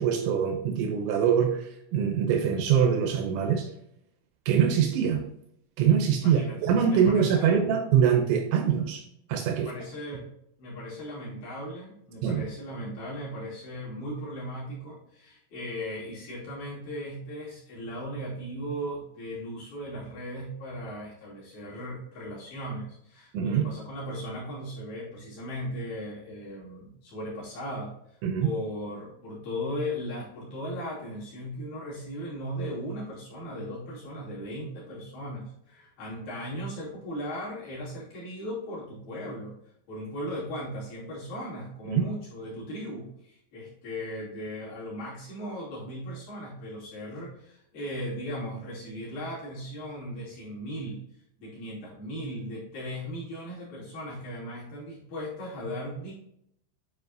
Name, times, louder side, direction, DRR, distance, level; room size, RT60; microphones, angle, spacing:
voice 1, 0.0-3.7 4.5-5.2 5.8-9.7 12.2-12.5 23.3-23.7 28.2-28.5 41.9-42.1, right 8 dB, 85° right, 4 dB, 2.7 m, -24 dB
voice 2, 6.2-6.6 6.9-7.6 9.5-10.3 10.6-39.5 39.9-51.0 51.4-56.1, equal, 50° left, -7 dB, 3.9 m, -37 dB
9.4 x 4.8 x 2.6 m, 0.74 s
omnidirectional pair, 6.0 m